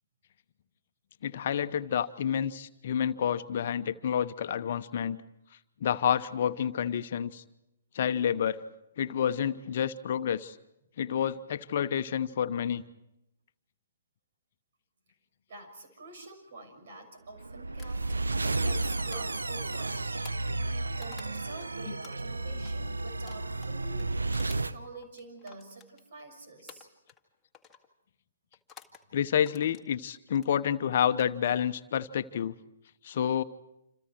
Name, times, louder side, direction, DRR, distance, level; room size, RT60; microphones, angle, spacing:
voice 1, 1.2-5.2 5.8-7.4 7.9-8.6 9.0-10.6 11.0-12.8 29.1-32.5 33.0-33.4, left 9 dB, 50° left, 10 dB, 1.0 m, -29 dB
voice 2, 15.5-18.0 18.4-20.0 20.5-24.1 24.5-26.9, right 2 dB, 55° right, 5 dB, 6.3 m, -47 dB
sound 1, 17.4-24.8, right 2 dB, 80° right, 0.8 m, -32 dB
sound 2, 17.8-21.7 22.0-26.3 26.7-27.3 27.5-27.9 28.5-29.0 29.4-30.5 31.1-31.5, left 7 dB, 10° left, 1.9 m, -54 dB
28.0 x 27.5 x 4.6 m, 0.86 s
figure-of-eight pair, 125°, 0 cm